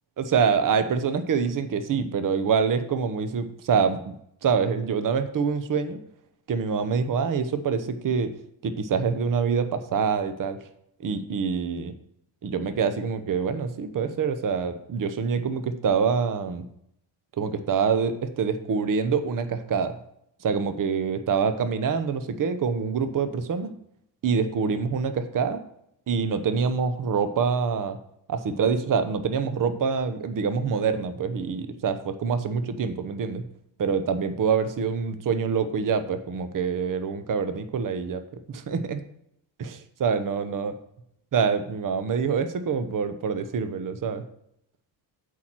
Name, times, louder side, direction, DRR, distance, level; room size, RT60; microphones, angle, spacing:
voice 1, 0.2-4.1 4.4-6.0 6.5-8.3 8.6-10.6 11.0-11.9 12.4-16.6 17.4-19.9 20.4-23.7 24.2-25.6 26.1-28.0 28.3-33.4 33.8-38.2 38.5-39.0 39.6-40.7 41.3-44.2, right 6 dB, 45° right, 10 dB, 0.9 m, -25 dB
8.5 x 4.7 x 7.4 m, 0.74 s
cardioid pair, 120°, 47 cm